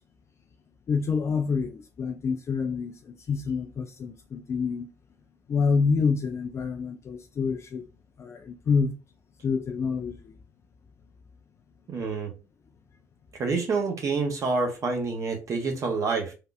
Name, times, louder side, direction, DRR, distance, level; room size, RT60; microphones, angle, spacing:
voice 1, 0.9-4.9 5.5-7.9 8.2-8.9 9.4-10.3, left 5 dB, 35° left, 0.3 m, -27 dB
voice 2, 11.9-12.3 13.3-16.3, right 4 dB, 40° right, 0.8 m, -27 dB
3.5 x 2.3 x 2.3 m
figure-of-eight pair, 50°, 8 cm